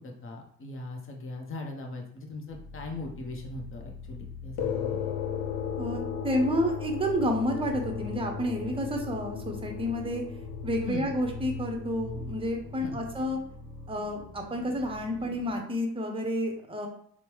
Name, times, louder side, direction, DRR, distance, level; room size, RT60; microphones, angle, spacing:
voice 1, 0.0-5.1 10.8-11.1 12.8-13.0, left 2 dB, 35° left, 1 dB, 0.7 m, -39 dB
sound 1, 2.5-15.5, left 3 dB, 5° left, 1.3 m, -43 dB
sound 2, 4.6-13.3, left 8 dB, 65° left, 0.5 m, -37 dB
voice 2, 5.8-10.2 10.6-13.4 13.9-16.9, equal, 15° right, 2 dB, 0.7 m, -30 dB
3.0 x 2.0 x 3.0 m, 0.65 s
supercardioid pair, 65°, 39 cm